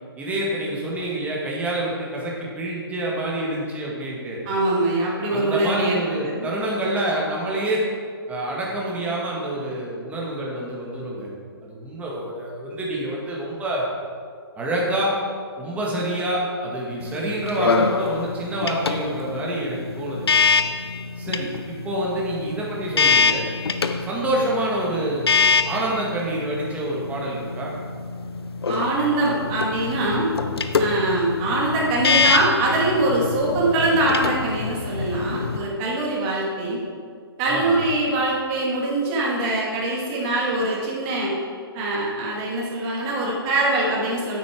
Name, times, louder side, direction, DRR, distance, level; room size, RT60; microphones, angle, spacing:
voice 1, 0.2-4.4 5.3-7.8 8.3-11.3 11.6-13.9 14.6-15.1 15.6-20.4 21.2-23.4 24.0-27.7 37.5-37.8, right 1 dB, 10° right, -4 dB, 1.9 m, -27 dB
voice 2, 4.5-6.0 6.2-6.5 28.7-30.3 30.8-36.8 37.4-41.3 41.7-44.4, right 2 dB, 30° right, -4 dB, 2.5 m, -23 dB
sound 1, 17.0-35.6, left 5 dB, 75° left, 0.7 m, -25 dB
9.2 x 8.3 x 4.7 m, 2.1 s
hypercardioid pair, 140°, 13 cm